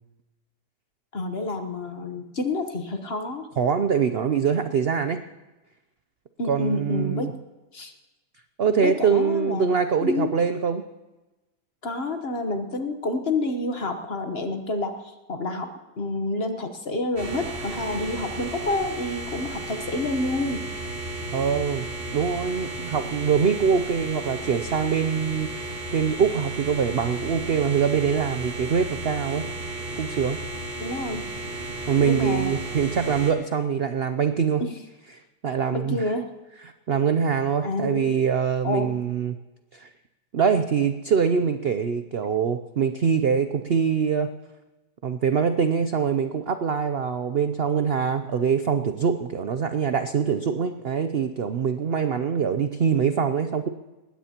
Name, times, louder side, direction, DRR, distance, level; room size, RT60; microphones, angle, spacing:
voice 1, 1.1-3.5 6.4-7.3 7.7-7.9 8.8-9.7 10.0-10.3 11.8-20.6 30.8-31.2 32.0-32.6 34.6-34.7 35.7-36.3 37.6-38.1 38.6-38.9, left 2 dB, 40° left, 6 dB, 1.2 m, -28 dB
voice 2, 3.6-5.2 6.5-7.3 8.6-10.8 21.3-21.8 22.1-29.4 30.0-30.4 31.9-34.6 35.4-36.0 36.9-39.4 39.7-39.9 40.3-44.3 45.0-53.7, right 6 dB, 75° right, 9 dB, 0.5 m, -24 dB
sound 1, 17.2-33.3, right 2 dB, 30° right, 2.9 m, -34 dB
20.0 x 16.5 x 2.9 m, 1.1 s
omnidirectional pair, 1.9 m